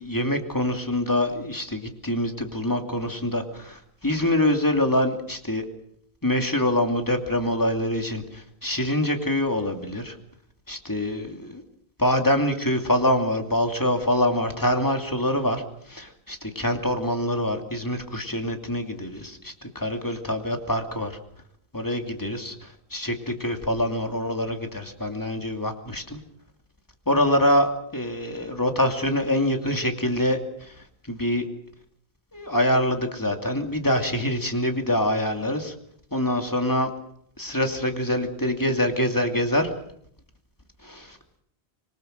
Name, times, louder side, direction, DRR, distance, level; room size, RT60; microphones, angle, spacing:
voice 1, 0.0-5.7 6.2-10.2 10.7-11.6 12.0-15.6 15.9-21.1 21.7-22.5 22.9-26.2 27.1-30.7 31.1-31.5 32.3-35.7 36.1-36.9 37.4-39.7 40.8-41.2, left 1 dB, 20° left, 4 dB, 2.6 m, -25 dB
26.0 x 21.5 x 6.6 m, 0.69 s
omnidirectional pair, 1.1 m